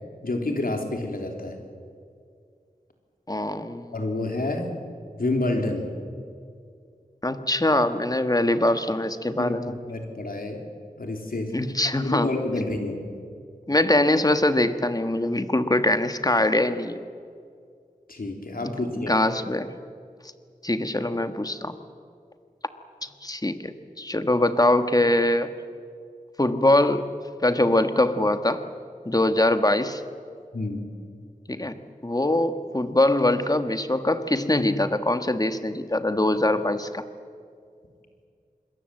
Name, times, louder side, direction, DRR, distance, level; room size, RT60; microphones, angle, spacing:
voice 1, 0.2-1.6 3.9-4.7 5.2-5.9 9.4-10.6 11.0-11.5 12.0-13.0 18.1-19.1 30.5-30.9, left 2 dB, 75° left, 3 dB, 3.6 m, -28 dB
voice 2, 3.3-3.9 7.2-9.7 11.5-12.3 13.7-17.0 18.6-19.7 20.6-21.7 23.0-25.5 26.4-27.1 27.4-28.7 29.0-30.0 31.5-37.0, left 1 dB, 25° left, 9 dB, 1.5 m, -23 dB
27.0 x 21.5 x 7.8 m, 2.3 s
wide cardioid pair, 60°, 15 cm